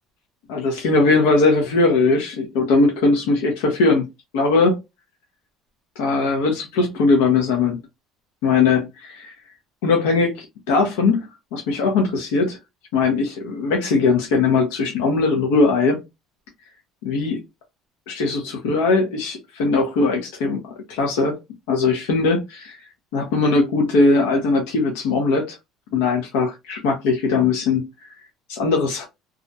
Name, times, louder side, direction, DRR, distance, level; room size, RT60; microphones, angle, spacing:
voice 1, 0.5-4.0 4.3-4.8 6.0-7.8 8.4-9.1 9.8-11.3 11.5-12.6 12.9-16.0 17.0-17.4 18.1-20.6 20.9-21.4 21.7-22.8 23.1-25.6 25.9-27.8 28.5-29.0, left 3 dB, 90° left, 0.6 m, -19 dB
2.4 x 2.1 x 2.6 m
cardioid pair, 125°, 0 cm